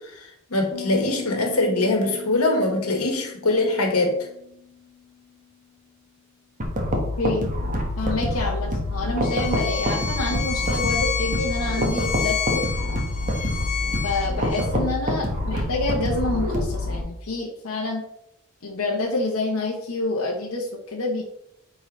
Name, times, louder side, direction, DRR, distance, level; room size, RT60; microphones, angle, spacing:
voice 1, 0.1-4.1, left 2 dB, 90° left, 3 dB, 1.4 m, -22 dB
Piano, 0.7-6.3, left 8 dB, 20° left, 2.3 m, -42 dB
sound 1, 6.6-17.0, left 1 dB, 35° right, 1.2 m, -26 dB
voice 2, 7.2-7.5 8.0-12.7 14.0-18.0 18.6-21.2, left 2 dB, 70° left, -1 dB, 0.9 m, -27 dB
Bowed string instrument, 9.2-14.7, left 7 dB, 35° left, 0.6 m, -29 dB
8.9 x 4.0 x 3.1 m, 0.77 s
head